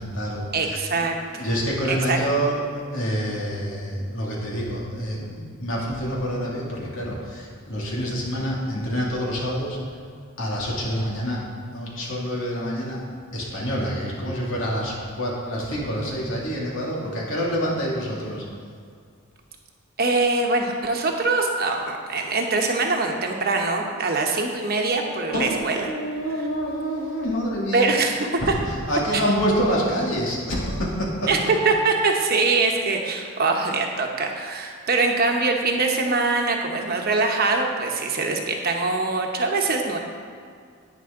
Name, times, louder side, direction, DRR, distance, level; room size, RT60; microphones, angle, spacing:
voice 1, 0.0-1.0 1.4-2.6 2.9-9.8 10.4-11.4 11.7-13.0 13.3-18.4 25.3-27.9 28.4-28.6 28.9-31.3, equal, 70° left, -4 dB, 2.5 m, -27 dB
voice 2, 0.5-1.5 1.9-2.2 20.0-25.9 27.7-28.1 28.5-28.6 29.1-29.2 31.3-40.0, right 3 dB, 45° right, 1 dB, 1.1 m, -23 dB
10.5 x 9.4 x 3.8 m, 2.2 s
head